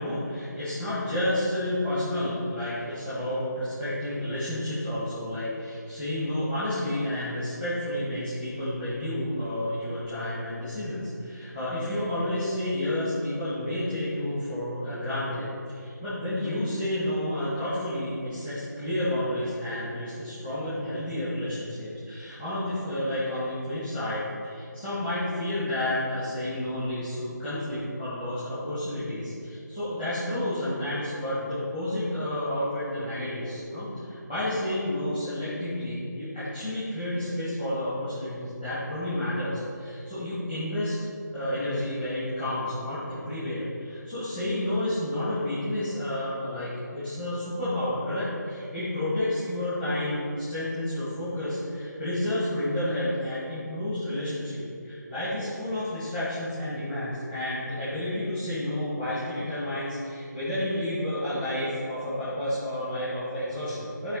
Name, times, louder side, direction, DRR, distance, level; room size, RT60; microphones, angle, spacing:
voice 1, 0.0-41.0 41.3-64.2, left 1 dB, 10° right, -13 dB, 2.0 m, -30 dB
12.5 x 4.5 x 4.1 m, 2.4 s
figure-of-eight pair, 165°, 10 cm